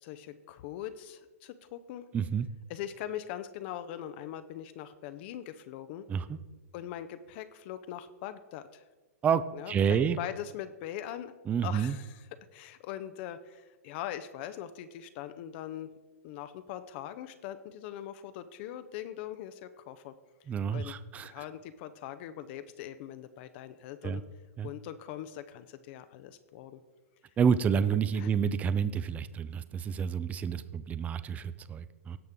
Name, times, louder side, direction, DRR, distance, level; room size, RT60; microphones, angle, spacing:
voice 1, 0.0-2.1 2.7-6.0 6.7-8.8 9.5-11.3 11.6-12.2 12.5-15.9 16.2-20.1 20.7-20.9 21.2-24.2 24.6-26.8 28.2-28.3, left 11 dB, 45° left, 11 dB, 0.6 m, -41 dB
voice 2, 2.1-2.5 6.1-6.4 9.2-10.2 11.5-12.0 20.5-21.4 24.0-24.2 24.6-24.7 27.4-32.2, right 7 dB, 15° right, 15 dB, 0.4 m, -29 dB
17.0 x 6.6 x 3.6 m, 1.2 s
hypercardioid pair, 115°, 8 cm